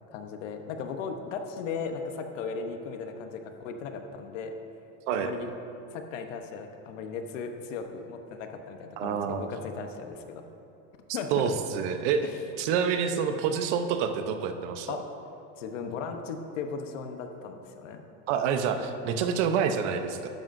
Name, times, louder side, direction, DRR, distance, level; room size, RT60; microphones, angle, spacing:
voice 1, 0.1-4.5 5.1-5.5 5.9-10.5 11.1-11.5 12.2-12.4 14.9-15.0 15.6-18.0, left 5 dB, 80° left, 6 dB, 1.0 m, -37 dB
voice 2, 9.0-9.5 11.3-12.2 12.6-15.0 18.3-20.3, right 7 dB, 65° right, 8 dB, 0.9 m, -27 dB
12.0 x 9.2 x 2.6 m, 2.7 s
supercardioid pair, 130°, 37 cm